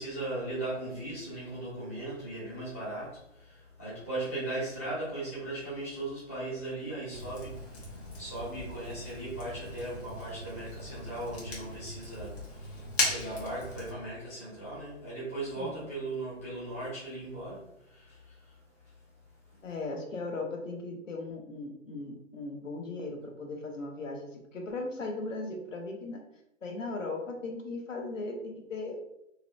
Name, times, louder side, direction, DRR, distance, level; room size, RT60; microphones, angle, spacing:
voice 1, 0.0-18.6 18.8-18.9, right 2 dB, 15° left, -10 dB, 0.4 m, -38 dB
Fire, 7.1-13.9, left 2 dB, 55° left, 1.1 m, -38 dB
voice 2, 19.6-26.2 26.6-29.0, left 2 dB, 85° left, 2 dB, 0.8 m, -38 dB
2.8 x 2.0 x 2.5 m, 0.76 s
hypercardioid pair, 150°, 38 cm